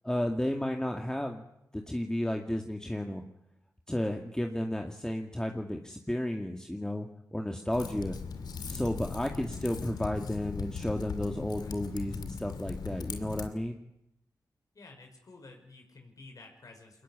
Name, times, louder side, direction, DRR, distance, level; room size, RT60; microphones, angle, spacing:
voice 1, 0.0-1.4 1.7-3.2 3.9-8.2 8.7-13.8, left 1 dB, 10° left, 3 dB, 2.3 m, -33 dB
Typing, 7.7-13.5, left 5 dB, 90° left, 2.6 m, -39 dB
voice 2, 14.7-17.0, left 3 dB, 60° left, 3 dB, 5.4 m, -52 dB
22.5 x 19.5 x 9.9 m, 0.83 s
cardioid pair, 55°, 7 cm